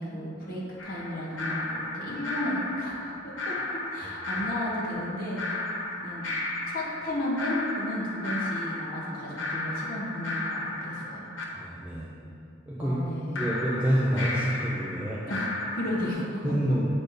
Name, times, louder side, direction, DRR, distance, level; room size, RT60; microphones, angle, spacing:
voice 1, 0.0-5.6 6.0-6.3 6.7-11.2 12.8-13.4 15.3-16.5, left 1 dB, 50° left, -7 dB, 1.6 m, -33 dB
sound 1, 0.8-11.4 13.4-16.1, left 2 dB, 90° left, 1.1 m, -34 dB
voice 2, 11.5-12.1 12.7-13.0 13.4-15.2 16.4-16.9, equal, 10° right, -7 dB, 0.7 m, -27 dB
8.3 x 4.4 x 5.1 m, 2.6 s
head